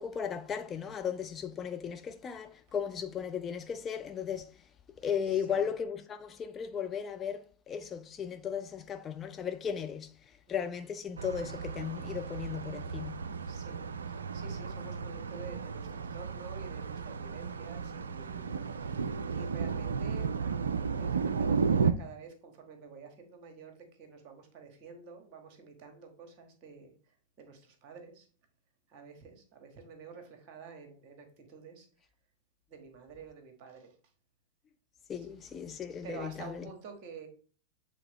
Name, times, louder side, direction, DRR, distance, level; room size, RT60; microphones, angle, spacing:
voice 1, 0.0-4.7 5.0-13.3 35.1-36.7, left 7 dB, 25° left, 0.4 m, -36 dB
voice 2, 5.2-5.6 10.4-10.8 13.5-28.3 28.9-31.9 32.7-33.9 35.1-37.3, right 5 dB, 40° right, 1.8 m, -50 dB
sound 1, 11.2-21.9, right 6 dB, 70° right, 0.4 m, -34 dB
7.6 x 3.8 x 3.6 m
figure-of-eight pair, 90°, 0 cm